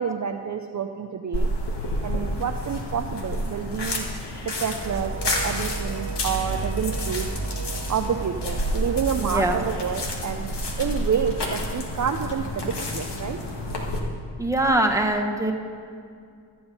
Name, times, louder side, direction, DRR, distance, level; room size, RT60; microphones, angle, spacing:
voice 1, 0.0-1.5 2.0-4.1 4.4-7.3 7.9-13.4, right 7 dB, 40° right, 5 dB, 0.6 m, -28 dB
sound 1, 1.3-14.0, left 1 dB, 60° left, 1.7 m, -30 dB
sound 2, 4.8-10.0, right 4 dB, 65° right, 1.5 m, -33 dB
voice 2, 9.2-9.6 14.4-15.5, right 1 dB, 5° right, 2 dB, 1.3 m, -22 dB
13.0 x 7.8 x 5.5 m, 2.3 s
cardioid pair, 55°, 46 cm